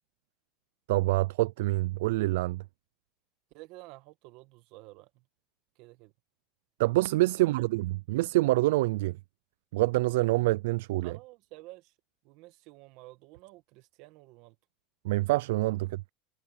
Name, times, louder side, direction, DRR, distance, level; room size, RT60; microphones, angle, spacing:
voice 1, 0.9-2.6 6.8-9.2 9.7-11.1 15.0-16.0, right 19 dB, 85° right, 0.3 m, -26 dB
voice 2, 3.5-5.3 5.7-6.1 7.4-7.5 11.0-11.9 12.2-14.6, right 20 dB, 60° right, 1.7 m, -51 dB
supercardioid pair, 135°, 0 cm